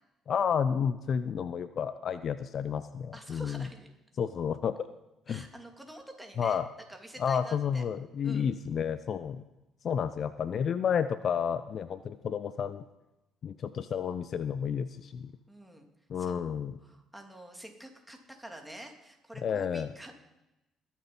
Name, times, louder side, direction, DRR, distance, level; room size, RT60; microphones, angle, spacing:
voice 1, 0.3-3.7 4.2-4.9 5.3-5.4 6.4-6.6 7.2-9.4 9.8-12.8 13.4-15.3 16.1-16.8 19.4-19.9, left 7 dB, 50° left, 14 dB, 0.6 m, -31 dB
voice 2, 3.1-3.9 5.3-6.6 6.9-7.9 8.2-8.5 15.5-15.9 16.1-16.4 16.8-20.1, right 1 dB, 5° right, 3 dB, 3.0 m, -47 dB
21.5 x 7.4 x 5.5 m, 0.93 s
hypercardioid pair, 45°, 0 cm